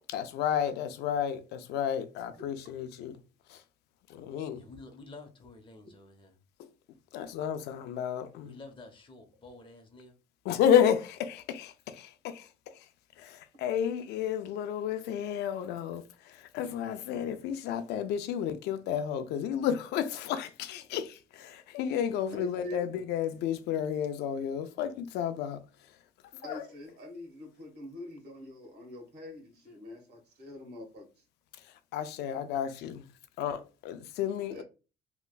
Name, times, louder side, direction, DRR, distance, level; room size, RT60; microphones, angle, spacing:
voice 1, 0.1-3.2 3.5-3.6 4.1-4.7 6.6-6.7 7.1-8.6 10.4-12.9 13.2-26.0 26.4-26.6 31.5-33.1 33.4-34.6, left 9 dB, 85° left, 0.5 m, -32 dB
voice 2, 4.5-6.4 8.4-10.2, left 3 dB, 30° left, 0.8 m, -50 dB
voice 3, 22.3-22.8 26.4-31.1 34.5-34.6, left 1 dB, 75° right, 1.4 m, -44 dB
3.3 x 2.9 x 2.3 m
cardioid pair, 110°, 17 cm